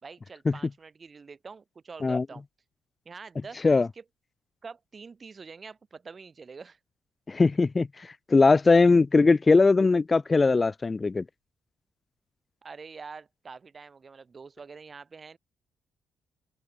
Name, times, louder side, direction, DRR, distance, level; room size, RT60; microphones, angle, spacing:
voice 1, 0.0-2.4 3.0-4.0 4.6-6.8 12.6-15.4, right 5 dB, 35° right, 6.1 m, -45 dB
voice 2, 7.3-11.2, left 3 dB, 25° left, 0.3 m, -20 dB
cardioid pair, 90°, 0 cm